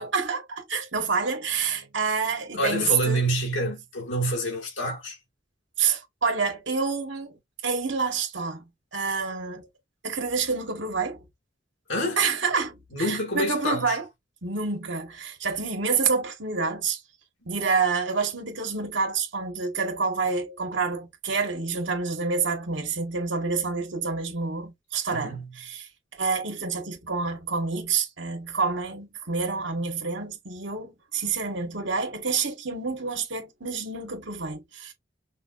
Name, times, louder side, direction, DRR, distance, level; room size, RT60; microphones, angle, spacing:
voice 1, 0.0-3.3 5.8-9.7 10.0-11.2 12.2-14.1 14.4-17.0 17.5-25.9 26.2-34.9, right 5 dB, 70° right, 1.8 m, -28 dB
voice 2, 2.6-5.2 11.9-12.2 12.9-14.0 25.1-25.5, right 1 dB, 80° left, 2.4 m, -27 dB
5.7 x 2.9 x 2.5 m
head